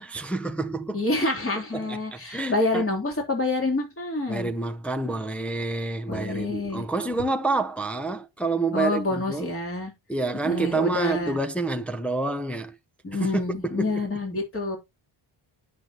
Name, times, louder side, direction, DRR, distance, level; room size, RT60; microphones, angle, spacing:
voice 1, 0.0-1.0 1.7-2.9 4.3-9.5 10.1-12.8 13.1-14.1, right 3 dB, 5° left, 0.6 m, -28 dB
voice 2, 0.9-4.5 6.1-6.9 8.7-9.9 10.4-11.4 13.0-14.8, left 2 dB, 25° left, 3.6 m, -27 dB
9.2 x 6.6 x 2.9 m
wide cardioid pair, 135°, 48 cm